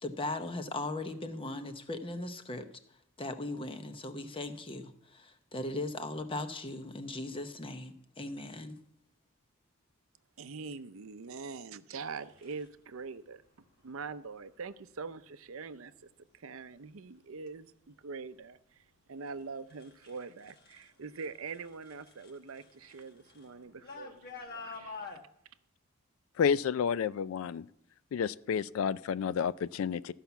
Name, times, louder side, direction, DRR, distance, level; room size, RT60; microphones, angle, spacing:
voice 1, 0.0-2.7 3.2-8.8, left 2 dB, 25° left, 0.8 m, -38 dB
voice 2, 10.4-13.4 13.8-15.9 16.3-25.0, right 4 dB, 65° right, 0.6 m, -44 dB
sound 1, 12.0-12.7 13.8-14.2 14.7-15.2 15.7-16.2 16.6-20.9 21.1-25.2, left 4 dB, 45° left, 1.2 m, -50 dB
voice 3, 26.4-27.7 28.1-30.1, left 7 dB, 65° left, 0.3 m, -30 dB
13.5 x 5.7 x 7.0 m
head